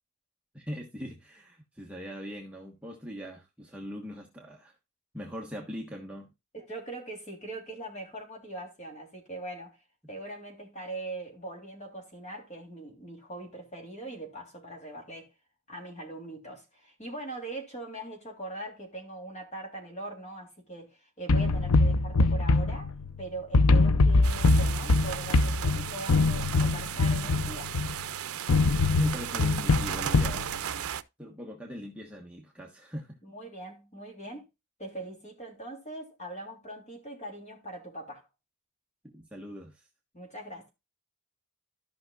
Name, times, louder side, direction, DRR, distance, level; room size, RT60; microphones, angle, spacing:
voice 1, 0.5-4.7 5.1-6.3 28.9-30.5 31.2-33.2 39.1-39.9, equal, 5° right, 1.2 m, -40 dB
voice 2, 6.5-9.8 10.1-15.3 15.7-22.9 23.2-27.8 33.2-34.5 34.8-38.3 40.1-40.7, right 2 dB, 30° left, 3.2 m, -41 dB
sound 1, 21.3-23.2 23.5-28.0 28.5-30.4, left 3 dB, 85° left, 0.6 m, -23 dB
sound 2, 24.2-31.0, right 9 dB, 80° right, 0.6 m, -36 dB
14.5 x 5.8 x 2.4 m
head